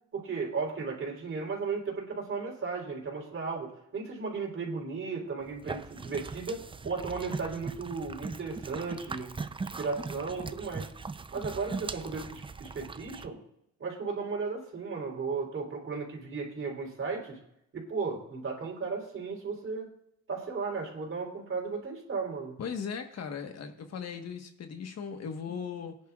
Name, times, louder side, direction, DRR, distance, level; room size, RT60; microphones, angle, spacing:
voice 1, 0.1-9.3 9.8-10.9 11.3-13.4 13.8-17.4 17.7-19.9 20.3-22.6, right 4 dB, 45° right, 0 dB, 3.8 m, -35 dB
sound 1, 5.4-13.3, right 4 dB, 15° right, 0.5 m, -40 dB
voice 2, 22.6-26.0, left 6 dB, 55° left, 6 dB, 1.4 m, -38 dB
18.0 x 10.0 x 2.4 m, 0.77 s
cardioid pair, 90°, 30 cm